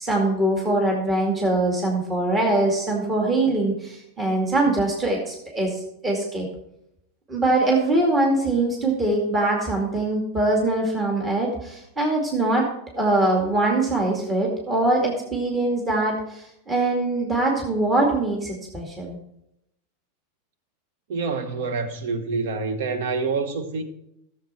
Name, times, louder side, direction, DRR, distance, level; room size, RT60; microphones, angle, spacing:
voice 1, 0.0-6.5 7.3-12.7 13.0-19.2, right 2 dB, 20° right, 2.3 m, -23 dB
voice 2, 21.1-23.8, right 4 dB, 70° right, 1.1 m, -27 dB
13.0 x 7.2 x 4.4 m
hypercardioid pair, 110°, 0 cm